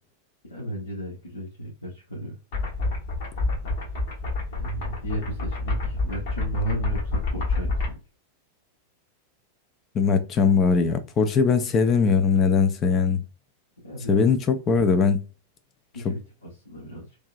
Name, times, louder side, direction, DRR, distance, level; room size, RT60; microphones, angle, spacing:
voice 1, 0.4-2.4 4.6-7.8 13.8-14.4 15.9-17.2, right 1 dB, 75° left, 1.2 m, -34 dB
sound 1, 2.5-7.9, left 3 dB, 50° left, 1.1 m, -28 dB
voice 2, 9.9-13.2 14.1-15.2, left 5 dB, 30° left, 0.5 m, -20 dB
3.3 x 2.7 x 2.6 m
figure-of-eight pair, 90°, 0 cm